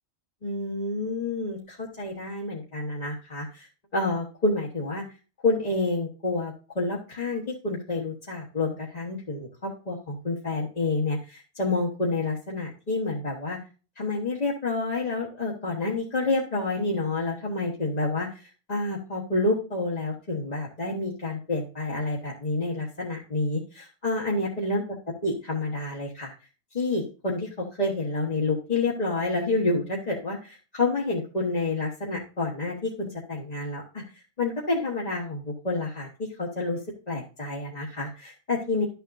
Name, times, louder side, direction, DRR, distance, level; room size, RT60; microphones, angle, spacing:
voice 1, 0.4-5.0 5.4-13.6 14.0-18.4 18.7-25.0 25.2-26.3 26.7-36.1 36.4-36.8 37.1-38.9, left 2 dB, 40° left, -4 dB, 1.4 m, -29 dB
12.0 x 6.9 x 2.6 m, 0.35 s
omnidirectional pair, 1.1 m